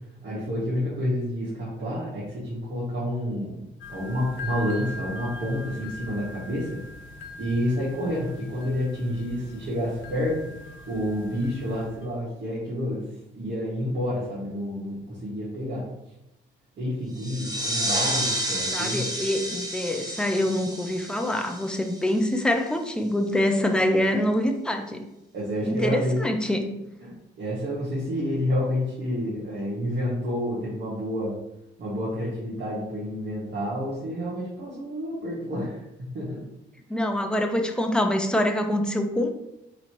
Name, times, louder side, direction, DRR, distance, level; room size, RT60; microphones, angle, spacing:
voice 1, 0.2-6.8 7.4-13.0 13.3-15.9 16.8-19.1 25.3-26.2 27.0-31.3 31.8-36.4, equal, 60° right, -8 dB, 1.7 m, -29 dB
sound 1, 3.8-12.1, left 2 dB, 75° left, 0.8 m, -41 dB
sound 2, 17.1-22.5, right 1 dB, 20° right, 0.9 m, -30 dB
voice 2, 18.7-25.0 25.6-26.7 36.9-39.3, left 1 dB, 5° left, 4 dB, 0.6 m, -25 dB
3.9 x 2.8 x 4.6 m, 0.88 s
cardioid pair, 90°, 20 cm